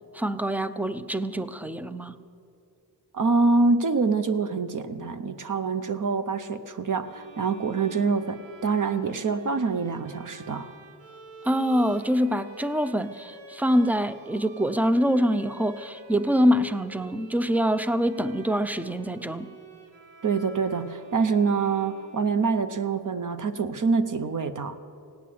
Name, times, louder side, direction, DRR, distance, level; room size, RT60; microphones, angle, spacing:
voice 1, 0.1-2.1 11.4-19.5, equal, 5° right, 13 dB, 0.4 m, -25 dB
voice 2, 3.1-10.7 20.2-24.8, right 4 dB, 45° right, 10 dB, 0.7 m, -25 dB
sound 1, 7.0-22.7, right 2 dB, 85° right, 1.7 m, -48 dB
17.0 x 9.2 x 8.5 m, 2.4 s
wide cardioid pair, 145°, 43 cm